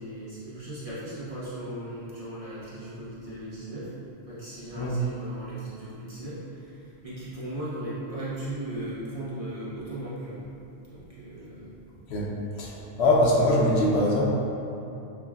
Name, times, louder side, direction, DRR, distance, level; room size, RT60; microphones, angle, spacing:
voice 1, 0.0-3.9 4.3-10.4 10.9-11.8, right 1 dB, 35° right, -10 dB, 0.8 m, -37 dB
voice 2, 13.0-14.3, left 1 dB, 70° left, -3 dB, 0.8 m, -22 dB
6.0 x 2.1 x 2.3 m, 2.8 s
omnidirectional pair, 1.2 m